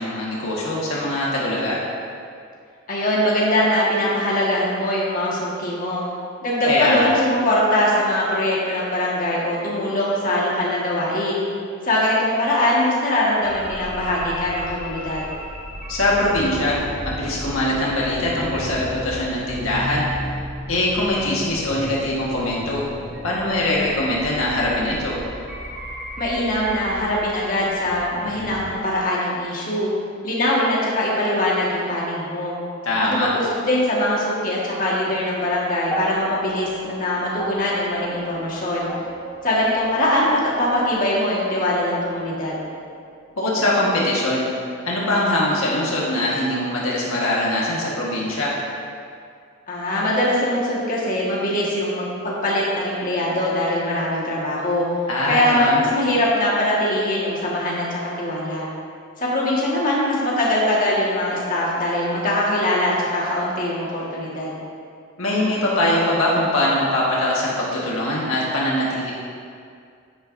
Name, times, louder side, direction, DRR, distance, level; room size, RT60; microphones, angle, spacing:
voice 1, 0.0-1.8 6.6-7.2 15.9-16.8 17.0-20.1 20.7-22.8 23.2-25.2 32.8-33.3 43.4-44.5 44.8-48.5 55.1-55.8 65.2-69.1, left 1 dB, 75° left, -5 dB, 1.6 m, -22 dB
voice 2, 2.9-6.0 6.4-11.4 11.8-15.3 26.2-29.9 30.2-32.5 33.2-38.9 39.4-42.6 49.7-54.8 55.2-58.7 59.2-64.6, left 1 dB, 40° left, -6 dB, 1.7 m, -22 dB
sound 1, 13.4-28.7, equal, 10° right, 2.3 m, -34 dB
sound 2, 35.8-44.2 45.2-45.3, right 2 dB, 15° left, 0.9 m, -36 dB
10.0 x 8.9 x 2.7 m, 2.3 s
head